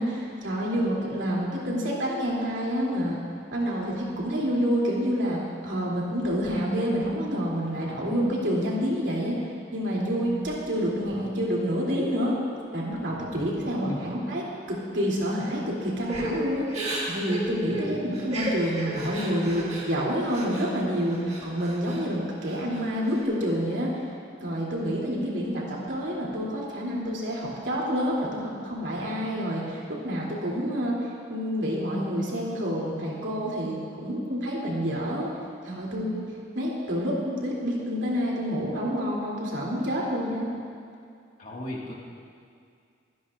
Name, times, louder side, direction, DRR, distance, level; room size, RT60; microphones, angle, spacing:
voice 1, 0.0-3.2 3.5-12.3 12.7-16.7 17.1-24.0 24.4-35.3 35.6-36.2 36.5-40.5, equal, 90° right, -4 dB, 2.9 m, -28 dB
Crying sobbing / Breathing, 16.1-20.7 21.1-22.0 22.4-23.2, right 1 dB, 35° right, 1.9 m, -34 dB
voice 2, 41.4-42.0, left 1 dB, 45° left, -3 dB, 1.8 m, -37 dB
24.0 x 9.8 x 2.5 m, 2.3 s
head